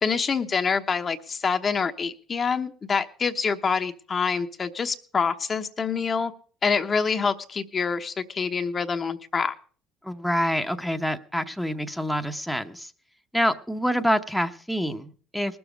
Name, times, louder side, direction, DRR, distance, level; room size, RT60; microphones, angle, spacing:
voice 1, 0.0-6.3 6.6-9.5, left 5 dB, 35° left, 7 dB, 0.9 m, -26 dB
voice 2, 10.0-12.9 13.3-15.6, equal, ahead, 6 dB, 0.8 m, -26 dB
19.5 x 7.0 x 5.1 m, 0.43 s
supercardioid pair, 80°, 0 cm